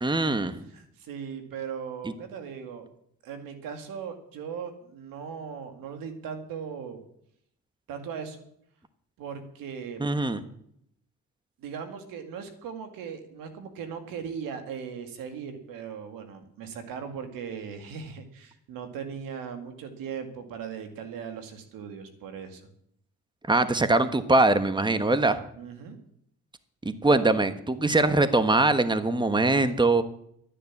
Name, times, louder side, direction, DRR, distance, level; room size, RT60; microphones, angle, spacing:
voice 1, 0.0-0.6 10.0-10.4 23.5-25.4 26.8-30.0, right 2 dB, 15° right, 11 dB, 1.3 m, -22 dB
voice 2, 0.7-2.9 3.2-7.0 7.9-8.4 9.2-10.0 11.6-22.6 25.6-26.0, right 7 dB, 85° right, 7 dB, 2.2 m, -38 dB
13.0 x 10.0 x 7.3 m, 0.69 s
supercardioid pair, 65°, 33 cm